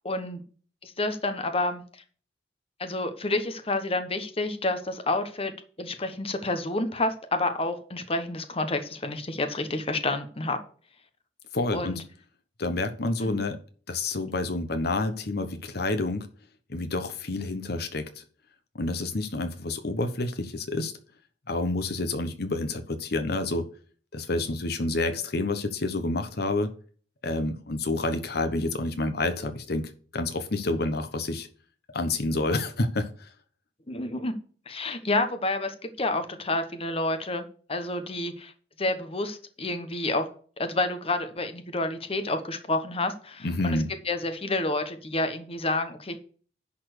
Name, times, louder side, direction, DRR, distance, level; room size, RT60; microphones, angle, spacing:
voice 1, 0.0-0.4 0.8-1.8 2.8-10.6 11.7-12.0 13.2-13.4 33.9-34.3 34.7-38.5 38.8-40.3 40.6-43.8 44.0-46.1, left 2 dB, 35° left, 8 dB, 1.1 m, -29 dB
voice 2, 11.5-12.0 12.6-13.6 13.9-16.3 16.7-18.2 18.7-20.9 21.5-23.7 24.1-26.7 27.2-31.5 31.9-33.3 43.4-43.9, left 2 dB, 65° left, 8 dB, 1.0 m, -29 dB
10.5 x 4.3 x 6.6 m, 0.43 s
head